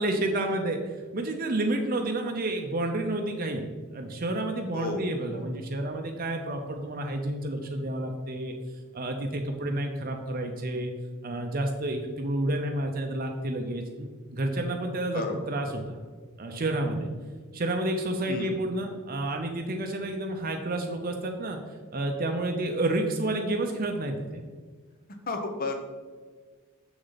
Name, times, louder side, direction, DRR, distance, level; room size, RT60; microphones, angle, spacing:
voice 1, 0.0-3.6 3.9-8.5 8.9-10.9 11.2-16.0 16.4-17.1 17.5-21.6 21.9-24.2, right 1 dB, 40° right, 3 dB, 0.6 m, -30 dB
voice 2, 25.3-25.7, left 3 dB, 40° left, 5 dB, 0.9 m, -31 dB
7.0 x 6.4 x 4.0 m, 1.5 s
head